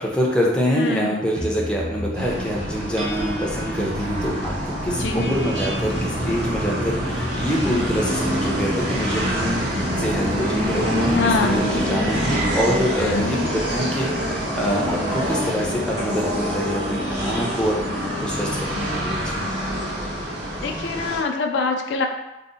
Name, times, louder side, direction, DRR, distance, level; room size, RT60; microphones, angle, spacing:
voice 1, 0.0-19.4, equal, 5° left, -3 dB, 0.4 m, -25 dB
voice 2, 0.7-1.2 5.0-5.3 11.1-12.2 13.0-13.4 20.6-22.1, left 4 dB, 80° left, 3 dB, 0.3 m, -25 dB
sound 1, 1.3-16.0, right 1 dB, 35° right, 0.6 m, -33 dB
sound 2, 2.1-21.2, equal, 70° right, 1.0 m, -26 dB
2.7 x 2.0 x 3.7 m, 0.96 s
head